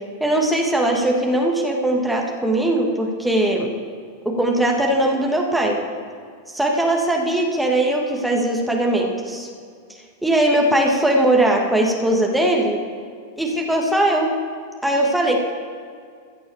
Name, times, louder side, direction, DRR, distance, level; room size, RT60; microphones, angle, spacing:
voice 1, 0.2-3.7 4.3-5.8 6.5-9.5 10.2-12.8 13.4-14.3 14.8-15.4, right 1 dB, 5° right, 0 dB, 1.8 m, -20 dB
15.0 x 6.1 x 7.0 m, 2.2 s
figure-of-eight pair, 90°, 0 cm